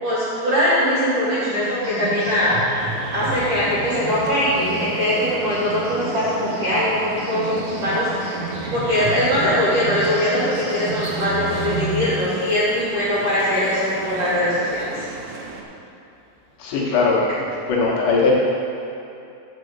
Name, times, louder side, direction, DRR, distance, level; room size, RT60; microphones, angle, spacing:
voice 1, 0.0-2.6 3.1-8.3 8.7-15.0, equal, 45° right, -10 dB, 2.4 m, -21 dB
sound 1, 1.7-12.1, right 2 dB, 60° right, 1.9 m, -31 dB
sound 2, 2.8-15.6, right 4 dB, 80° right, 3.2 m, -37 dB
voice 2, 16.6-17.2 17.7-18.3, left 4 dB, 70° left, -5 dB, 3.0 m, -19 dB
10.5 x 4.9 x 7.9 m, 2.7 s
omnidirectional pair, 5.6 m